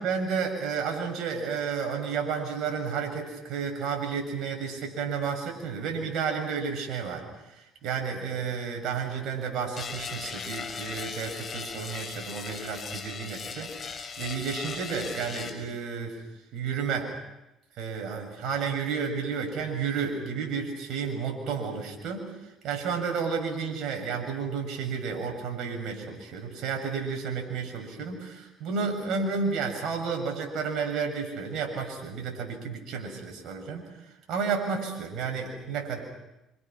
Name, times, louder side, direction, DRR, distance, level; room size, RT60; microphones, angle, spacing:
voice 1, 0.0-7.2 7.5-16.2 16.5-17.1 17.8-22.2 22.6-33.8 34.3-36.0, right 5 dB, 65° right, 3 dB, 7.4 m, -31 dB
sound 1, 9.7-15.5, left 6 dB, 40° left, 5.8 m, -38 dB
27.5 x 26.0 x 6.2 m, 0.93 s
supercardioid pair, 90°, 0 cm